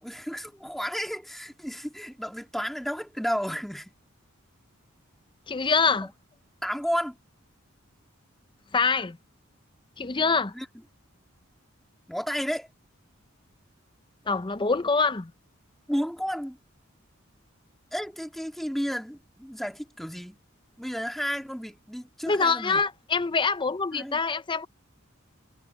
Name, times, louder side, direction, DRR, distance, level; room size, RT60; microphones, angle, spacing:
voice 1, 0.0-3.9 6.0-6.1 6.6-7.2 10.5-10.7 12.1-12.7 15.9-16.6 17.9-20.4 20.8-22.8 23.9-24.2, equal, ahead, 2.4 m, -32 dB
voice 2, 5.5-6.1 8.7-9.2 10.0-10.5 14.3-15.3 22.3-24.7, left 4 dB, 25° left, 0.6 m, -25 dB
head